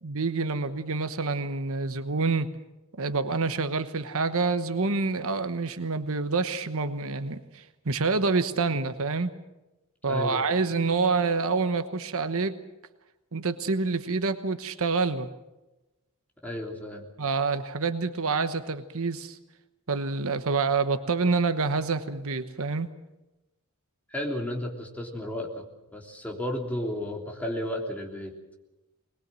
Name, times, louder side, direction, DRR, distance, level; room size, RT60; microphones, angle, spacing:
voice 1, 0.0-2.5 3.0-9.3 10.0-12.6 13.3-15.3 17.2-19.4 19.9-22.9, right 4 dB, 65° right, 10 dB, 1.1 m, -27 dB
voice 2, 10.1-10.4 16.4-17.0 24.1-25.6 25.9-28.3, left 1 dB, 5° left, -1 dB, 3.3 m, -33 dB
21.5 x 21.0 x 7.7 m, 1.0 s
head